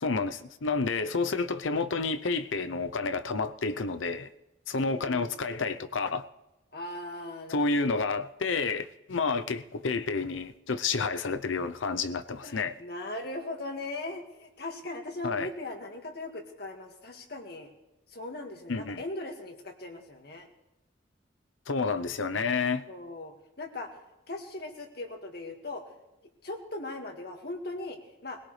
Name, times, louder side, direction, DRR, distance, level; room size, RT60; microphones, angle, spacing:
voice 1, 0.0-4.3 4.7-6.2 7.5-12.7 15.2-15.5 18.7-19.0 21.7-22.8, left 4 dB, 80° left, 0.7 m, -30 dB
voice 2, 4.8-5.3 6.7-8.0 12.4-17.7 18.1-20.5 22.9-24.0 24.3-25.8 26.4-28.4, left 2 dB, 50° left, 1.9 m, -39 dB
21.5 x 17.0 x 3.3 m
head